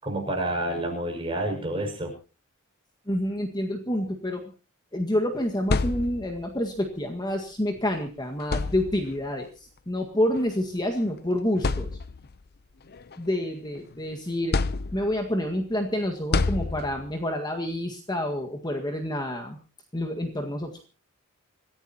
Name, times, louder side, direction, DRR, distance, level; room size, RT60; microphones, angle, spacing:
voice 1, 0.0-2.1, right 1 dB, 25° right, 1 dB, 6.1 m, -29 dB
voice 2, 3.1-4.5 4.9-12.0 13.2-14.6 14.9-19.6 19.9-20.9, left 1 dB, 20° left, 3 dB, 1.8 m, -28 dB
sound 1, 5.4-6.5 7.8-7.9 8.4-9.3 10.4-10.5 11.1-11.2 11.6-12.4 12.9-13.9 14.5-15.3 16.3-17.2, left 3 dB, 50° left, 0.7 m, -28 dB
26.5 x 15.5 x 2.9 m, 0.35 s
head